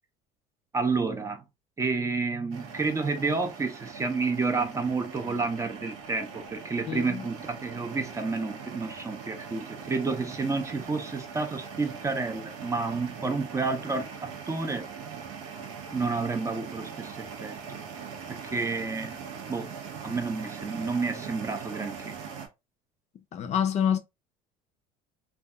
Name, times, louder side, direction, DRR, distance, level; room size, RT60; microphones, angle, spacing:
voice 1, 0.7-1.4 1.8-14.9 15.9-17.8 18.3-19.2 19.5-19.8 20.0-22.1, right 4 dB, 15° right, 0.4 m, -30 dB
sound 1, 2.5-22.5, right 6 dB, 85° right, 0.6 m, -41 dB
voice 2, 6.9-7.3 23.3-24.0, left 8 dB, 40° left, 0.4 m, -27 dB
2.6 x 2.2 x 2.2 m
supercardioid pair, 105°, 17 cm